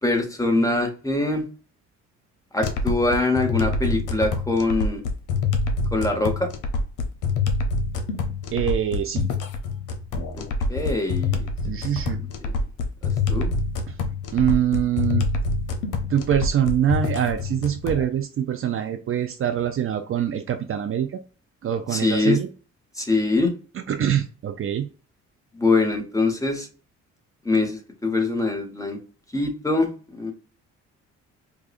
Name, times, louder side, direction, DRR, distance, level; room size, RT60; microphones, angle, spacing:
voice 1, 0.0-1.5 2.5-5.0 5.9-6.5 10.3-10.4 10.7-11.5 12.4-12.5 13.3-13.5 21.9-22.4 23.0-23.5 25.5-26.7 27.4-29.0 29.3-30.3, left 2 dB, 10° left, 3 dB, 1.2 m, -23 dB
sound 1, 2.6-18.0, left 3 dB, 80° left, 0.8 m, -26 dB
voice 2, 8.5-9.3 11.6-12.2 13.9-14.0 14.3-15.3 16.1-21.2 21.6-22.5 23.7-24.9, right 10 dB, 45° right, 6 dB, 0.5 m, -24 dB
4.7 x 2.3 x 2.5 m, 0.37 s
cardioid pair, 90°, 30 cm